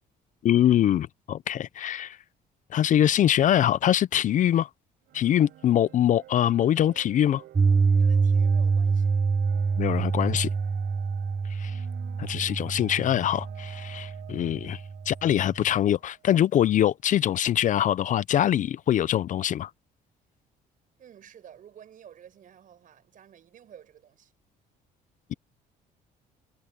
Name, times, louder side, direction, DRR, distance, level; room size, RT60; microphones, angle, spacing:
voice 1, 0.4-2.2 2.7-4.7 5.1-7.4 9.8-10.5 11.5-11.8 12.2-14.8 15.1-19.7, left 11 dB, 50° left, 0.5 m, -23 dB
sound 1, 5.1-16.3, right 14 dB, 75° right, 7.9 m, -50 dB
Piano, 7.6-15.7, right 5 dB, 20° right, 0.4 m, -26 dB
voice 2, 8.0-9.1 21.0-24.3, right 9 dB, 50° right, 6.3 m, -51 dB
cardioid pair, 110°, 17 cm